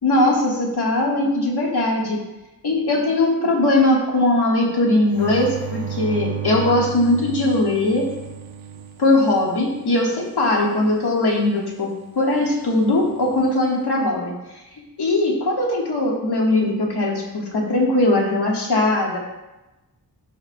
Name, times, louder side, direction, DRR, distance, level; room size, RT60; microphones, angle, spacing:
voice 1, 0.0-2.2 2.6-8.1 9.0-11.9 12.1-14.3 15.0-19.2, left 2 dB, 70° left, -3 dB, 1.6 m, -20 dB
sound 1, 5.1-9.7 13.0-13.6, right 8 dB, 55° right, 0.8 m, -32 dB
13.5 x 4.7 x 2.2 m, 1.0 s
wide cardioid pair, 115°, 41 cm